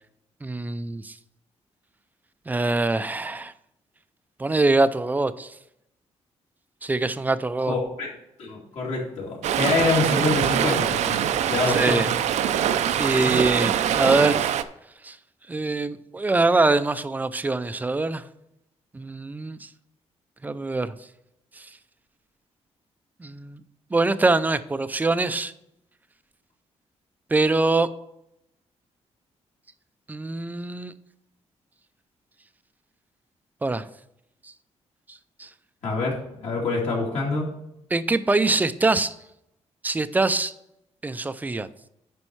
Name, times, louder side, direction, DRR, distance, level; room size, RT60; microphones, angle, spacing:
voice 1, 0.4-1.1 2.5-3.5 4.4-5.5 6.8-7.7 11.7-12.1 13.0-14.5 15.0-15.2 15.5-18.2 18.9-19.7 20.4-20.9 21.6-21.7 23.2-23.6 23.9-25.5 27.3-27.9 30.1-30.9 33.6-33.9 35.4-35.5 37.9-39.1 39.8-40.5 41.0-41.7, right 3 dB, 15° right, 13 dB, 0.4 m, -23 dB
voice 2, 7.7-8.1 8.4-12.1 13.3-13.4 35.8-37.5, left 3 dB, 65° left, -4 dB, 2.5 m, -26 dB
Stream, 9.4-14.6, right 10 dB, 75° right, 0.5 m, -23 dB
9.7 x 5.5 x 4.6 m, 0.80 s
wide cardioid pair, 160°, 12 cm